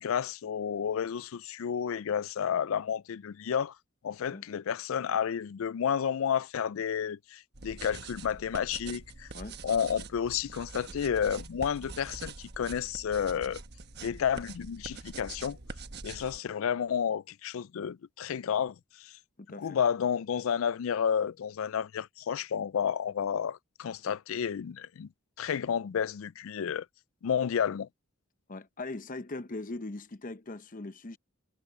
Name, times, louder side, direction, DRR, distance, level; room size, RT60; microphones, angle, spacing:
voice 1, 0.0-3.8 4.0-9.3 9.6-13.6 14.0-15.6 16.0-19.2 19.6-25.1 25.4-26.9 27.2-27.9, left 8 dB, 70° left, 0.4 m, -31 dB
sound 1, 7.5-16.4, right 3 dB, 50° right, 1.2 m, -45 dB
voice 2, 19.4-19.8 28.5-31.2, left 2 dB, 40° left, 0.8 m, -40 dB
head